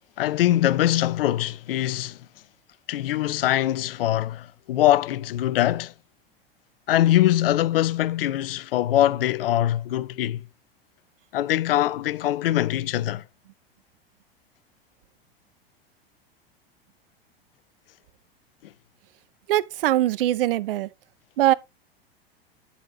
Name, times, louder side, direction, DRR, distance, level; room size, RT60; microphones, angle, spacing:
voice 1, 0.2-2.2 2.9-5.9 6.9-10.4 11.3-13.2, left 13 dB, 70° left, 0.6 m, -22 dB
voice 2, 19.5-20.9 21.4-21.5, right 14 dB, 65° right, 0.6 m, -21 dB
9.4 x 7.0 x 2.7 m
figure-of-eight pair, 85°, 30 cm